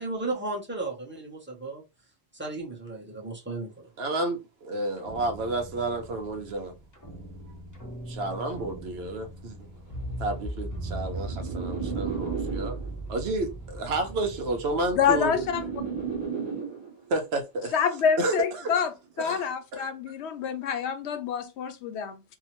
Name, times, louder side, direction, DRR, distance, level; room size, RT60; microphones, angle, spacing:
voice 1, 0.0-1.8 2.3-3.9, right 2 dB, 10° right, 0.7 m, -34 dB
voice 2, 4.0-6.7 8.1-9.7 10.2-12.8 13.1-15.4 17.1-17.7 18.2-18.7 19.2-19.4 19.7-19.9, right 2 dB, 70° right, 0.9 m, -30 dB
sound 1, 5.0-16.2, right 1 dB, 25° left, 0.4 m, -39 dB
sound 2, 10.1-13.1 14.1-17.1 18.1-18.5, right 6 dB, 35° right, 1.1 m, -35 dB
voice 3, 14.9-15.7 17.7-18.9 19.2-22.2, left 7 dB, 75° left, 0.9 m, -27 dB
2.8 x 2.1 x 2.9 m
omnidirectional pair, 1.1 m